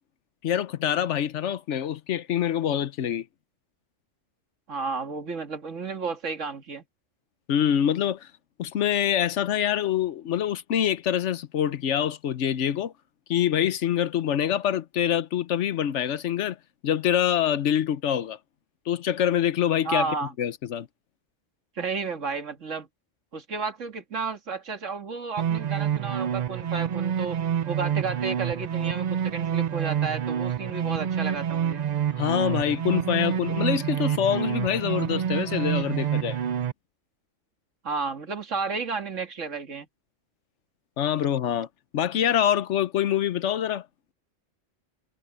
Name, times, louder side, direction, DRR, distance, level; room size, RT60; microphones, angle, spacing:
voice 1, 0.4-3.2 7.5-8.3 8.6-12.9 13.3-16.6 16.8-18.4 18.9-20.1 20.4-20.9 32.2-36.4 41.0-41.7 41.9-43.9, left 10 dB, 70° left, 1.1 m, -25 dB
voice 2, 4.7-6.8 19.8-20.3 21.8-22.9 23.3-27.4 27.7-31.8 37.8-39.9, right 4 dB, 80° right, 2.3 m, -32 dB
sound 1, 25.4-36.7, right 9 dB, 55° right, 0.4 m, -27 dB
omnidirectional pair, 1.3 m